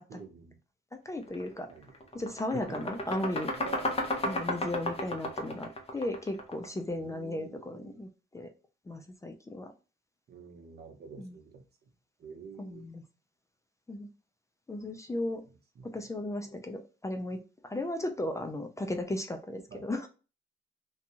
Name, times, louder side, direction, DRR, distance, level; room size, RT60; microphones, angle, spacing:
voice 1, 0.1-0.5 1.7-1.9 2.5-2.8 3.6-4.1 4.6-4.8 6.9-8.0 10.3-11.6 12.2-12.9 15.8-16.0 19.7-19.8, right 5 dB, 55° right, 5 dB, 0.8 m, -47 dB
voice 2, 0.9-1.7 2.1-3.5 4.2-8.5 8.9-9.7 11.2-11.4 12.6-13.0 13.9-14.1 14.7-15.4 15.8-17.4 17.6-20.1, left 1 dB, 15° left, 5 dB, 0.4 m, -36 dB
sound 1, 1.3-1.5 1.8-6.8, left 1 dB, 30° left, 0.9 m, -33 dB
2.6 x 2.3 x 2.8 m, 0.33 s
cardioid pair, 90°, 20 cm